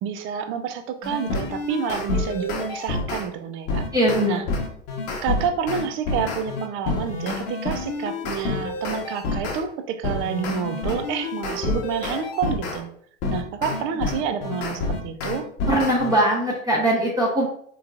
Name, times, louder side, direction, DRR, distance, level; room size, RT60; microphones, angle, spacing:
voice 1, 0.0-3.9 4.3-4.4 5.2-12.9 13.3-15.5, right 7 dB, 40° right, 8 dB, 0.5 m, -29 dB
sound 1, 1.0-3.3 3.7-9.6 10.0-12.8 13.2-16.2, left 3 dB, 45° left, 1.0 m, -28 dB
voice 2, 3.9-4.4 15.7-17.5, right 1 dB, 10° right, -4 dB, 0.8 m, -21 dB
3.5 x 3.1 x 2.4 m, 0.64 s
hypercardioid pair, 100°, 34 cm